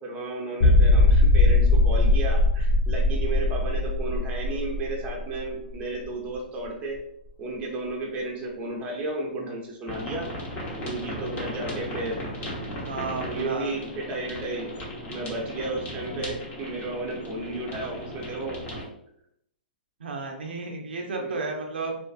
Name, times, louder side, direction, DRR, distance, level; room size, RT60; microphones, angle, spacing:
voice 1, 0.0-7.0 7.4-10.3 10.8-12.2 13.2-14.7 15.1-18.6 21.1-21.4, right 2 dB, 20° right, -1 dB, 0.7 m, -33 dB
sound 1, 0.6-6.0 6.3-6.4 7.0-7.1, left 2 dB, 65° left, 0.6 m, -20 dB
sound 2, 9.9-18.8, equal, 30° left, 0.9 m, -36 dB
voice 2, 12.8-13.7 20.0-22.0, right 3 dB, 75° right, 2 dB, 0.5 m, -33 dB
2.4 x 2.4 x 2.4 m, 0.75 s
hypercardioid pair, 125°, 6 cm